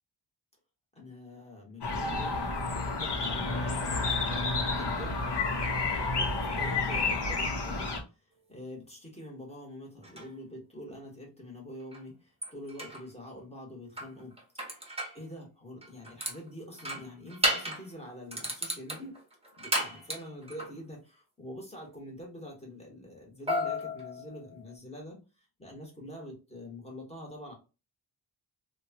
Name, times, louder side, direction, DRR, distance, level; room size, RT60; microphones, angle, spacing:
voice 1, 1.0-5.2 6.4-7.9 8.5-12.2 12.5-14.4 15.1-19.2 19.6-25.2 25.6-27.5, left 1 dB, 15° left, -2 dB, 1.2 m, -45 dB
sound 1, 1.8-8.0, left 3 dB, 55° left, 0.9 m, -30 dB
sound 2, 10.0-10.3 11.9-12.0 12.4-13.0 14.0-15.2 15.8-16.4 16.8-17.9 18.3-20.7 23.5-24.7, equal, 10° right, 0.8 m, -33 dB
3.0 x 2.2 x 2.8 m, 0.30 s
wide cardioid pair, 130°, 48 cm